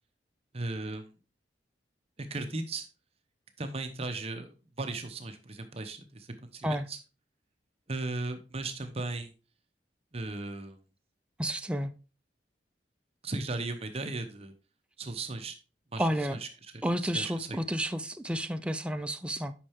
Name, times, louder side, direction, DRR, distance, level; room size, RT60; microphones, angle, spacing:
voice 1, 0.5-1.1 2.2-2.9 3.6-6.3 6.5-7.0 7.9-9.3 10.1-10.8 13.2-14.5 15.0-15.5 15.9-16.7 17.0-17.6, right 2 dB, 35° right, 0.8 m, -36 dB
voice 2, 11.4-11.9 16.0-16.4 16.8-19.5, equal, 5° right, 0.4 m, -31 dB
8.5 x 5.5 x 3.5 m
head